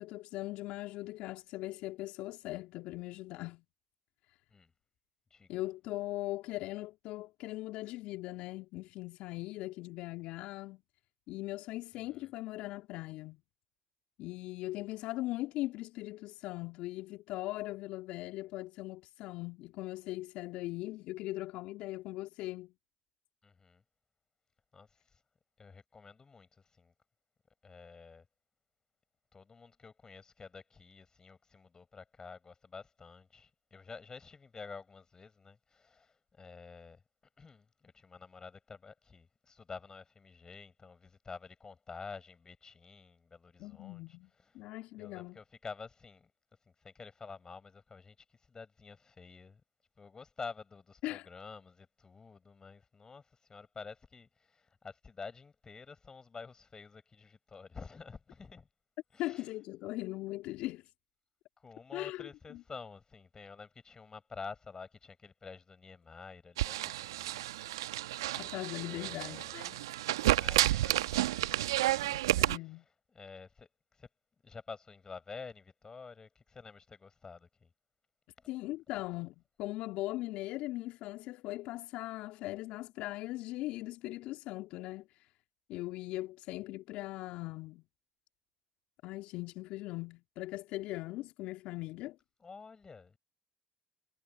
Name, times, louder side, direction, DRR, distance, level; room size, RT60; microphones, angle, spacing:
voice 1, 0.0-3.6 5.5-10.8 11.3-13.4 14.2-22.7 43.6-44.3 44.5-45.4 51.0-51.3 59.2-60.8 61.9-62.6 68.4-69.9 72.4-72.8 78.5-85.3 85.7-87.8 89.0-92.2, left 18 dB, 65° left, 2.8 m, -40 dB
voice 2, 5.3-5.6 12.1-12.3 23.4-23.8 24.7-25.2 25.6-26.9 27.6-28.2 29.3-37.0 37.4-44.5 45.0-46.3 46.7-49.6 50.0-58.7 59.1-59.5 61.6-67.4 68.8-69.6 70.4-72.3 72.7-72.8 73.1-74.1 74.4-77.7 78.4-78.5 92.4-93.2, left 4 dB, 30° left, 6.8 m, -50 dB
sound 1, 66.6-72.6, right 15 dB, 80° right, 1.0 m, -31 dB
hypercardioid pair, 55°, 2 cm